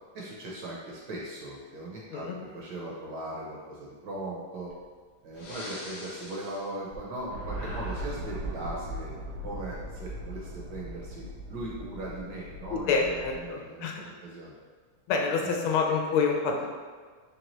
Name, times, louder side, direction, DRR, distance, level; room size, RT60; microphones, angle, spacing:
voice 1, 0.1-4.7 5.2-9.1 9.4-14.6 15.4-15.7, right 1 dB, 65° right, -4 dB, 1.2 m, -39 dB
Breathing, 4.7-4.8 5.3-7.3 7.5-8.6, equal, 60° left, 1.3 m, -41 dB
sound 1, 7.3-13.5, right 1 dB, 85° right, 1.5 m, -39 dB
voice 2, 12.7-14.0 15.1-16.7, left 5 dB, 80° left, 1 dB, 1.4 m, -27 dB
4.0 x 3.2 x 3.0 m, 1.5 s
omnidirectional pair, 2.3 m